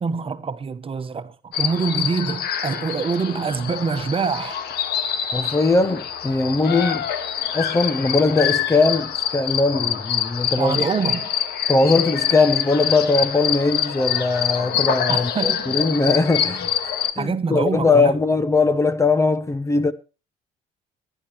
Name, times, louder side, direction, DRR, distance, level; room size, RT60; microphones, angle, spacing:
voice 1, 0.0-4.6 10.6-11.3 15.1-15.7 17.2-18.1, right 5 dB, 35° right, 1.2 m, -25 dB
sound 1, 1.5-17.1, left 9 dB, 70° left, 1.7 m, -25 dB
voice 2, 5.3-7.1 7.5-10.9 11.7-16.7 17.2-19.9, left 3 dB, 15° left, 0.8 m, -20 dB
22.0 x 10.5 x 3.1 m
cardioid pair, 110°, 17 cm